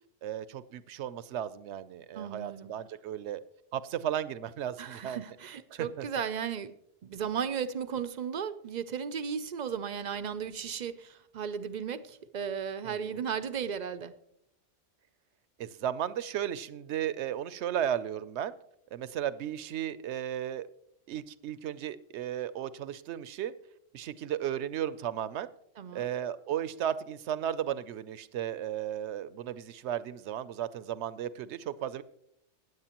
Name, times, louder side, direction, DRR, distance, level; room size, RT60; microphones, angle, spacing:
voice 1, 0.2-3.4 3.7-5.2 5.7-6.1 12.9-13.2 15.6-18.5 18.9-20.7 21.1-23.5 23.9-25.5 25.9-32.0, right 10 dB, 75° right, 15 dB, 0.9 m, -35 dB
voice 2, 2.1-2.7 4.8-6.8 7.0-14.1 25.8-26.1, right 7 dB, 55° right, 13 dB, 0.5 m, -35 dB
16.0 x 9.7 x 2.9 m, 0.75 s
omnidirectional pair, 1.2 m